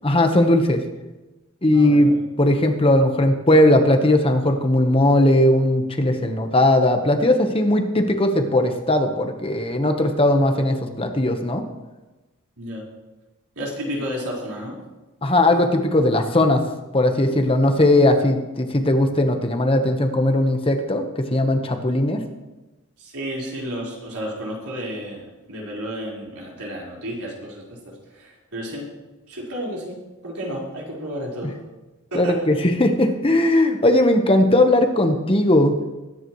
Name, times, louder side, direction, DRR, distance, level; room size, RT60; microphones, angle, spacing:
voice 1, 0.0-0.8 1.6-2.1 2.4-11.6 15.2-16.6 16.9-22.2 32.1-32.5 32.8-36.0, left 1 dB, 25° left, 5 dB, 1.1 m, -18 dB
voice 2, 1.7-2.2 12.6-12.8 13.5-14.8 23.0-28.9 29.3-31.6 32.1-32.4, equal, 85° right, -4 dB, 4.5 m, -32 dB
22.0 x 10.0 x 3.1 m, 1.1 s
head